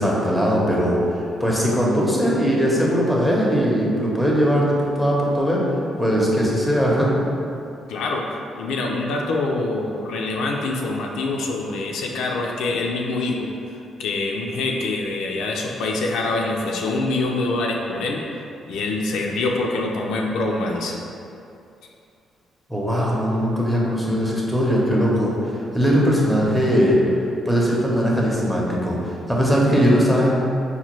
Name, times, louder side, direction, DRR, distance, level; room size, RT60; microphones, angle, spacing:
voice 1, 0.0-5.6 6.0-7.1 22.7-30.4, equal, 5° right, -4 dB, 0.7 m, -20 dB
voice 2, 7.9-8.2 8.6-18.2 18.7-21.0, left 2 dB, 85° left, 0 dB, 0.4 m, -25 dB
4.2 x 2.2 x 3.0 m, 2.6 s
cardioid pair, 90°, 0 cm